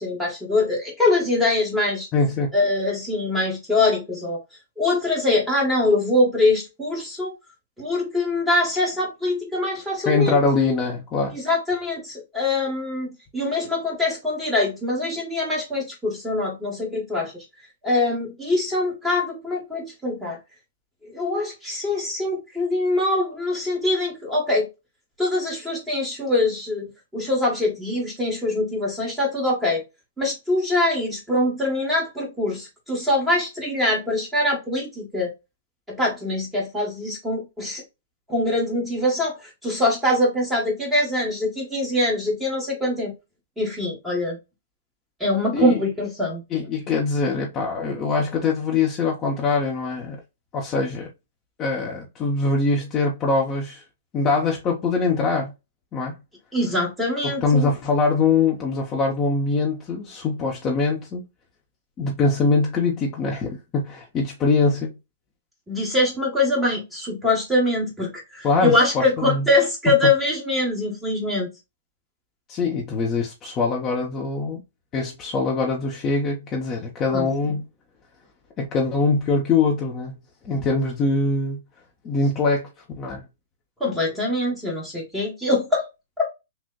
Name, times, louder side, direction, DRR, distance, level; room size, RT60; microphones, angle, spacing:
voice 1, 0.0-2.1 2.5-4.4 4.8-7.3 7.8-10.4 11.3-17.4 17.8-20.4 21.0-24.7 25.2-29.8 30.2-35.3 35.9-37.8 38.3-43.1 43.6-44.4 45.2-46.4 56.5-57.7 65.7-71.5 77.1-77.5 83.8-85.9 86.2-86.3, left 2 dB, 5° right, 1.1 m, -23 dB
voice 2, 2.1-2.5 10.1-11.4 45.5-45.8 46.5-50.2 50.5-51.1 51.6-53.8 54.1-55.5 55.9-56.1 57.4-61.2 62.0-64.9 68.4-69.5 72.5-74.6 74.9-77.6 78.6-80.2 80.4-81.6 82.0-82.7 83.0-83.2, left 4 dB, 20° left, 0.7 m, -23 dB
6.1 x 2.1 x 2.2 m
hypercardioid pair, 165°, 0 cm